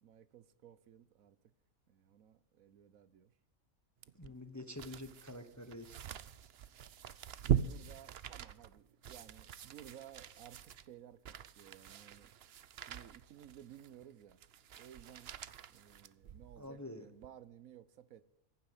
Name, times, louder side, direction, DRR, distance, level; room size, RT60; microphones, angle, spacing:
voice 1, 0.0-1.4 1.9-3.3 7.4-12.3 12.9-14.4 14.7-15.4 15.7-18.2, right 10 dB, 75° right, 1.2 m, -56 dB
sound 1, 4.0-16.7 17.2-17.3, right 9 dB, 55° right, 0.8 m, -42 dB
voice 2, 4.1-6.0 16.6-17.1, left 1 dB, 15° left, 0.9 m, -47 dB
15.5 x 11.0 x 8.0 m
omnidirectional pair, 1.5 m